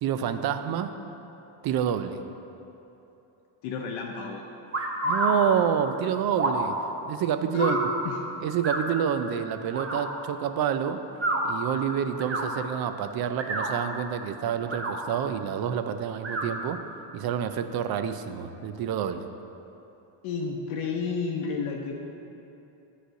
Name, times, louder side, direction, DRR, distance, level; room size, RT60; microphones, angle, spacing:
voice 1, 0.0-0.9 1.6-2.2 5.0-6.8 7.1-7.8 8.4-11.0 11.4-16.8 17.1-19.3, right 8 dB, 50° right, 10 dB, 0.5 m, -28 dB
voice 2, 3.6-4.4 7.5-7.8 8.0-8.2 20.2-21.9, left 5 dB, 75° left, 0 dB, 0.7 m, -31 dB
sound 1, 4.7-5.4 6.3-6.7 7.6-7.9 8.6-8.8 9.7-10.0 11.1-11.4 12.1-12.4 13.3-13.7 14.6-14.9 16.2-16.5, right 2 dB, 25° right, 0.9 m, -28 dB
7.8 x 3.3 x 6.3 m, 2.9 s
cardioid pair, 100°, 49 cm